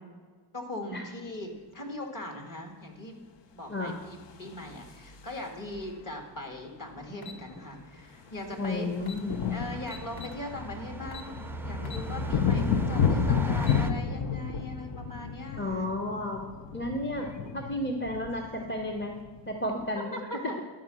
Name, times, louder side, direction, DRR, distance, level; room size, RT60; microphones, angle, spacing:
voice 1, 0.5-3.1 3.5-8.9 9.5-11.3 11.6-15.9 17.2-17.6 20.0-20.4, left 1 dB, 45° left, 3 dB, 1.8 m, -40 dB
sound 1, 4.1-5.7 7.0-7.1 7.3-7.5 7.8-19.9, left 7 dB, 65° left, 0.7 m, -32 dB
sound 2, 5.7-5.9 8.4-13.9, right 5 dB, 5° right, 0.3 m, -38 dB
sound 3, 7.2-7.4 8.6-8.7 9.0-9.2 9.9-10.4 11.1-11.3 11.8-12.1 12.5-12.6 13.4-13.8, left 5 dB, 85° left, 1.1 m, -44 dB
voice 2, 8.6-9.6 15.6-16.5 16.7-19.2 19.5-20.2, left 1 dB, 25° left, 2 dB, 0.9 m, -32 dB
11.0 x 4.7 x 7.5 m, 1.5 s
wide cardioid pair, 115°, 47 cm